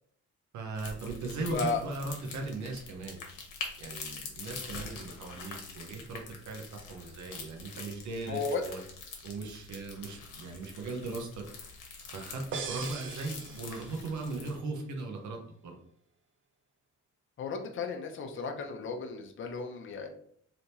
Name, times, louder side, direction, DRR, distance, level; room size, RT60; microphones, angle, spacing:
voice 1, 0.5-3.2 3.8-8.8 9.2-11.4 12.1-15.8, right 3 dB, 70° right, 2 dB, 0.8 m, -38 dB
sound 1, 0.8-14.6, left 4 dB, 85° left, 0.9 m, -45 dB
voice 2, 1.5-1.8 8.3-8.6 17.4-20.1, left 4 dB, 40° left, 3 dB, 0.6 m, -34 dB
sound 2, 12.5-14.3, right 5 dB, 40° right, 0.5 m, -41 dB
3.4 x 2.9 x 2.8 m, 0.65 s
cardioid pair, 90°, 30 cm